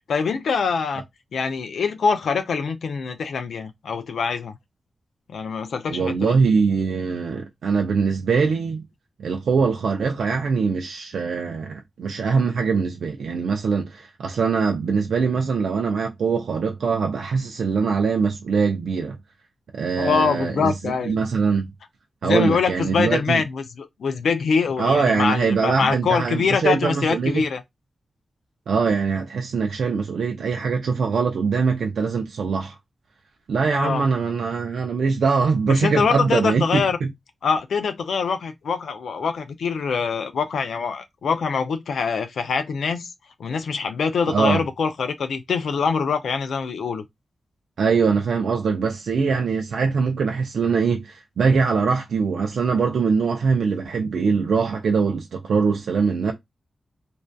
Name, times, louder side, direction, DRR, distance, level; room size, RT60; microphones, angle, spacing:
voice 1, 0.1-1.0 1.3-4.6 5.3-6.4 20.0-21.2 22.2-27.6 33.7-34.0 35.7-37.0 37.4-43.1 43.4-47.0, left 5 dB, 80° left, 0.3 m, -24 dB
voice 2, 5.9-8.8 9.2-19.2 19.7-21.7 22.2-23.4 24.8-27.3 28.7-32.7 33.5-37.1 44.3-44.6 47.8-56.3, right 5 dB, 85° right, 0.4 m, -22 dB
2.5 x 2.2 x 2.2 m
wide cardioid pair, 155°, 0 cm